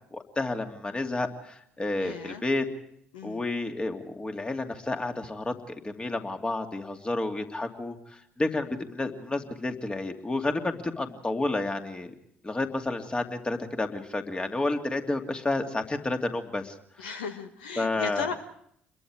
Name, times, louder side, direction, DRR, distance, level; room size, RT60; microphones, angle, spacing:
voice 1, 0.1-2.6 3.2-12.1 12.4-17.0 17.8-18.3, left 2 dB, 20° left, 5 dB, 2.6 m, -30 dB
voice 2, 2.0-2.4 3.1-3.4 17.0-18.3, left 5 dB, 75° left, 7 dB, 1.4 m, -36 dB
28.0 x 22.0 x 4.9 m, 0.68 s
figure-of-eight pair, 50°, 5 cm